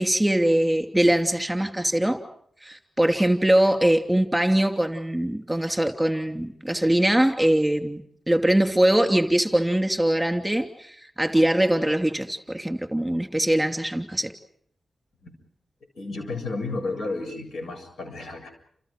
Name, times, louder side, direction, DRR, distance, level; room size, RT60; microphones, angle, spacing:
voice 1, 0.0-2.2 2.6-8.0 8.3-10.9 11.2-14.3, right 1 dB, 5° right, 6 dB, 2.9 m, -22 dB
voice 2, 16.0-18.5, left 3 dB, 85° left, 5 dB, 7.6 m, -32 dB
30.0 x 28.0 x 5.1 m, 0.64 s
cardioid pair, 65°, 0 cm